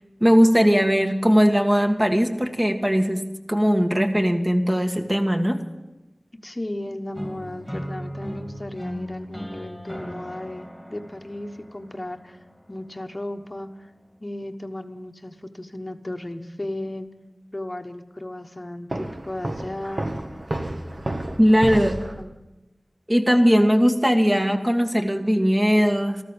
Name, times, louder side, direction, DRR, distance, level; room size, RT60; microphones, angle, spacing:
voice 1, 0.2-5.6 21.4-22.0 23.1-26.2, equal, 20° right, 4 dB, 1.6 m, -19 dB
voice 2, 6.4-12.4 12.7-13.7 14.2-17.1 17.5-20.1 22.2-22.3, left 1 dB, 35° left, 6 dB, 1.2 m, -35 dB
sound 1, 7.1-13.1, equal, ahead, 2.3 m, -37 dB
Walk footsteps, 18.9-22.2, right 1 dB, 55° right, 1.4 m, -31 dB
14.0 x 13.5 x 7.1 m, 1.0 s
wide cardioid pair, 45°, 0 cm